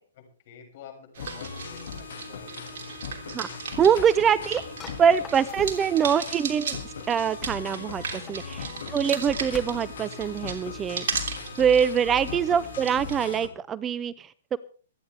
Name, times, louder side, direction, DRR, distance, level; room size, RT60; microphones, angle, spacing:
voice 1, 0.1-3.0 5.5-5.6 8.4-8.8 12.3-12.5, left 7 dB, 50° left, 3 dB, 7.0 m, -50 dB
sound 1, 1.1-13.4, right 6 dB, 60° right, 3.2 m, -37 dB
sound 2, 1.2-13.5, left 8 dB, 65° left, 2.2 m, -40 dB
sound 3, 3.6-6.3 7.9-10.1, left 8 dB, 20° left, 1.6 m, -46 dB
voice 2, 3.8-4.6 5.0-14.6, right 7 dB, 20° right, 19 dB, 0.5 m, -24 dB
26.5 x 10.0 x 3.5 m, 0.41 s
hypercardioid pair, 120°, 0 cm